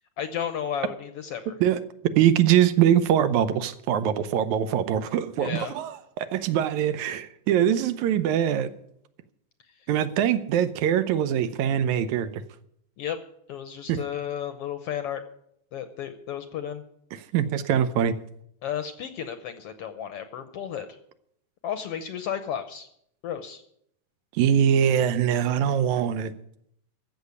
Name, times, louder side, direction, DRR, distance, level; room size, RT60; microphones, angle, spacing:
voice 1, 0.2-1.5 5.4-5.7 13.0-13.2 13.5-15.2 15.7-16.8 18.6-21.0 21.6-22.9 23.2-23.6, left 9 dB, 70° left, 1.5 m, -33 dB
voice 2, 1.6-8.7 9.9-12.4 13.9-14.0 17.1-18.2 24.3-26.3, right 9 dB, 80° right, 2.1 m, -23 dB
15.0 x 6.5 x 9.5 m
omnidirectional pair, 3.4 m